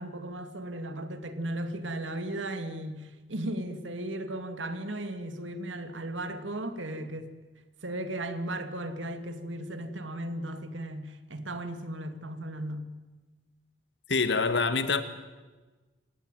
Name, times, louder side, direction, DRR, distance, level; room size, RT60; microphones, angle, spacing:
voice 1, 0.0-7.3 7.8-12.8, right 1 dB, 85° right, 2.6 m, -36 dB
voice 2, 14.1-15.0, left 4 dB, 70° left, 1.9 m, -25 dB
26.5 x 18.5 x 9.3 m
head